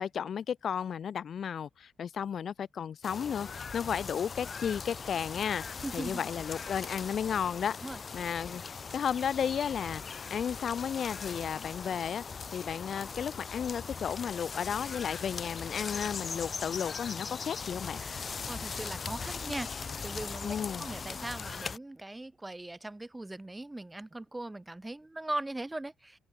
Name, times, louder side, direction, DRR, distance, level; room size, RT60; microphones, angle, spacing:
voice 1, 0.0-5.6 5.9-7.8 8.1-12.2 12.5-18.0 20.4-20.8, left 8 dB, 55° left, 0.5 m, -33 dB
sound 1, 3.0-21.8, left 5 dB, 40° left, 1.3 m, -40 dB
voice 2, 5.8-6.2 7.8-8.0 18.0-26.2, right 2 dB, 15° right, 1.8 m, -40 dB
sound 2, 13.1-18.5, right 7 dB, 50° right, 6.8 m, -59 dB
cardioid pair, 90°, 0 cm